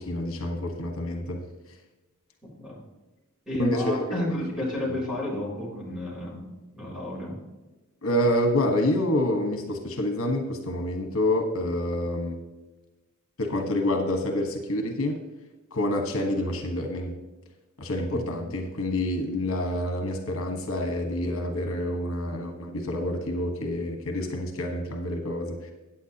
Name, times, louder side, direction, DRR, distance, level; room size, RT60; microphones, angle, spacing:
voice 1, 0.0-1.4 3.6-4.2 4.7-4.9 8.0-12.4 13.4-15.1 15.7-17.2 17.8-25.7, left 1 dB, 70° left, 3 dB, 1.4 m, -27 dB
voice 2, 2.4-2.8 3.5-6.4 6.8-7.4 18.1-18.4, left 1 dB, 5° right, -4 dB, 3.8 m, -31 dB
14.5 x 9.1 x 2.9 m, 1.1 s
head